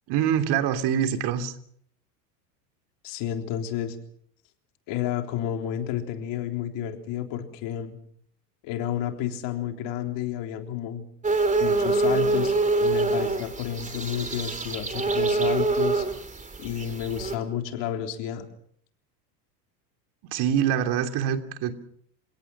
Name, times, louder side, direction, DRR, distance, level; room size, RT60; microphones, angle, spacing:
voice 1, 0.1-1.5 20.3-21.7, right 9 dB, 55° right, 7 dB, 3.0 m, -24 dB
voice 2, 3.0-4.0 4.9-8.0 8.6-11.0 11.6-16.1 16.6-18.5, left 10 dB, 60° left, 5 dB, 3.7 m, -31 dB
sound 1, 11.2-17.3, right 3 dB, 15° right, 3.2 m, -25 dB
29.5 x 17.5 x 6.0 m, 0.65 s
hypercardioid pair, 100°, 49 cm